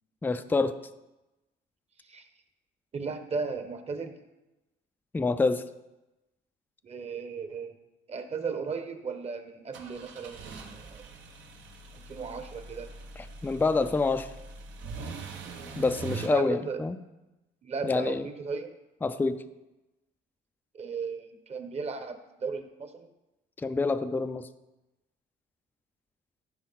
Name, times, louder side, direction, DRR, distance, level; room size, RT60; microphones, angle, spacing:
voice 1, 0.2-0.7 5.1-5.6 13.4-14.3 15.8-17.0 17.8-18.3 19.0-19.4 23.6-24.5, left 3 dB, 10° left, 10 dB, 0.4 m, -27 dB
voice 2, 2.9-4.2 6.8-7.8 8.1-11.0 11.9-12.9 16.2-16.8 17.6-18.7 20.7-23.1, right 4 dB, 35° right, 8 dB, 1.0 m, -36 dB
sound 1, 9.7-16.3, right 4 dB, 80° right, 1.3 m, -42 dB
14.5 x 5.2 x 4.0 m, 1.0 s
cardioid pair, 120°, 19 cm